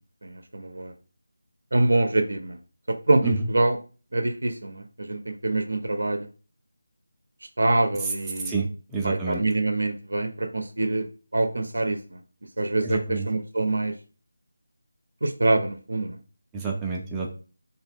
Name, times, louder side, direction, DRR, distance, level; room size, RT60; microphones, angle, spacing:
voice 1, 0.2-0.9 1.7-2.6 3.1-3.8 4.1-4.8 5.1-6.3 7.6-8.5 9.0-11.0 11.3-12.0 12.6-13.9 15.2-16.2, right 2 dB, 80° right, 7 dB, 0.4 m, -25 dB
voice 2, 8.4-9.4 12.8-13.3 16.5-17.3, right 3 dB, 5° right, -3 dB, 0.3 m, -29 dB
2.9 x 2.2 x 3.5 m, 0.37 s
figure-of-eight pair, 170°, 0 cm